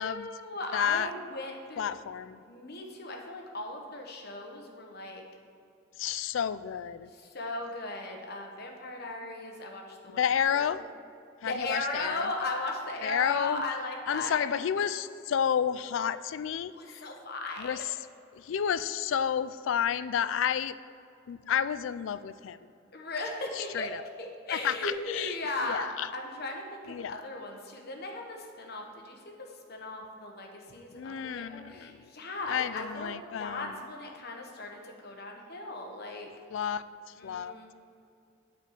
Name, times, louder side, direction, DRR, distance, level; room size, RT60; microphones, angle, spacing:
voice 1, 0.0-1.9 2.4-5.2 7.1-10.2 10.5-10.8 11.4-14.5 16.8-17.7 22.9-23.9 24.2-36.3 37.2-37.7, left 2 dB, 55° left, 2 dB, 1.1 m, -37 dB
voice 2, 0.7-1.1 1.8-2.4 6.0-7.1 10.1-10.8 11.4-12.3 13.0-13.6 14.1-17.0 17.6-17.8 18.3-20.8 21.3-22.6 23.6-24.0 24.5-25.3 25.6-26.1 26.9-27.2 30.9-32.0 32.5-33.7 36.5-36.8 37.2-37.6, left 8 dB, 75° left, 15 dB, 0.3 m, -31 dB
8.9 x 4.3 x 7.2 m, 2.5 s
head